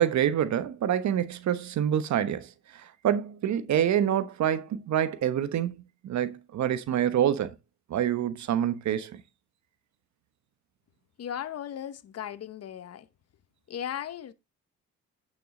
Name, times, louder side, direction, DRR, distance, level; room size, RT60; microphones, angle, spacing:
voice 1, 0.0-5.8 6.0-7.5 7.9-9.2, right 10 dB, 65° right, 1.1 m, -26 dB
voice 2, 11.2-13.1 13.7-14.3, left 10 dB, 55° left, 1.1 m, -36 dB
9.0 x 6.6 x 3.8 m
cardioid pair, 90°, 30 cm